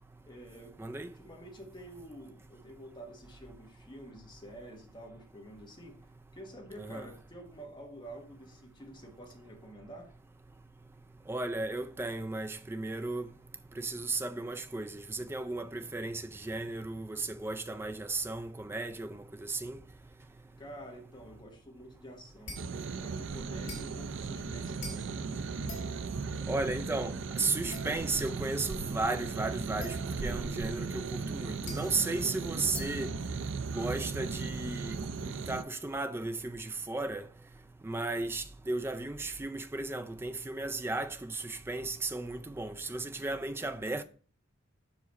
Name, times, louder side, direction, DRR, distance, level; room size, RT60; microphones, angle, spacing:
voice 1, 0.2-0.8 1.1-6.0 6.3-10.1 20.6-22.6 22.9-25.1 32.0-32.4 43.6-44.0, right 1 dB, 25° left, 1.2 m, -49 dB
voice 2, 11.3-13.3 13.8-19.8 26.5-30.0 30.2-33.1 33.7-35.0 35.2-37.2 37.8-44.0, right 3 dB, 10° right, 0.3 m, -35 dB
sound 1, 22.5-22.9 23.7-26.3 27.7-28.4 29.8-30.5 31.4-33.8, left 1 dB, 40° left, 2.1 m, -46 dB
sound 2, 22.6-35.6, right 4 dB, 75° right, 0.5 m, -37 dB
5.9 x 4.9 x 4.1 m
head